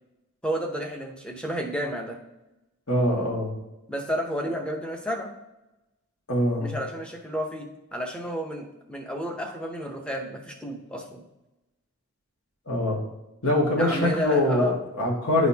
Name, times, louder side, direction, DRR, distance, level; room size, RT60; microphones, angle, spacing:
voice 1, 0.4-2.2 3.9-5.3 6.6-11.2 13.8-14.8, equal, 5° left, 2 dB, 0.8 m, -31 dB
voice 2, 2.9-3.5 6.3-6.7 12.7-13.0 13.4-14.7 15.0-15.5, left 1 dB, 70° left, -2 dB, 1.8 m, -23 dB
11.0 x 4.1 x 2.8 m, 0.97 s
head